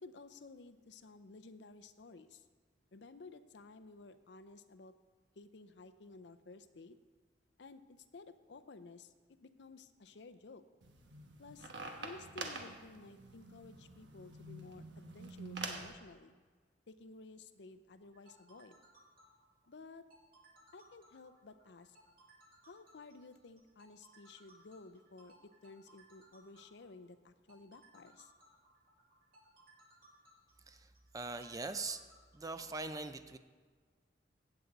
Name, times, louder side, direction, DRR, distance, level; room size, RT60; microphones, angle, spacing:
voice 1, 0.0-2.5 2.9-4.9 5.4-7.0 7.6-9.1 9.4-10.6 11.4-11.7 12.0-16.3 16.9-18.8 19.7-20.1 20.7-22.0 22.6-28.3, left 3 dB, 70° left, 12 dB, 0.6 m, -54 dB
sound 1, 10.8-15.9, right 3 dB, 75° right, 1.1 m, -46 dB
sound 2, 18.0-32.8, right 1 dB, 55° right, 2.3 m, -64 dB
voice 2, 30.7-32.1 32.3-33.4, right 3 dB, 20° right, 9 dB, 0.5 m, -42 dB
16.0 x 8.0 x 4.0 m, 1.5 s
head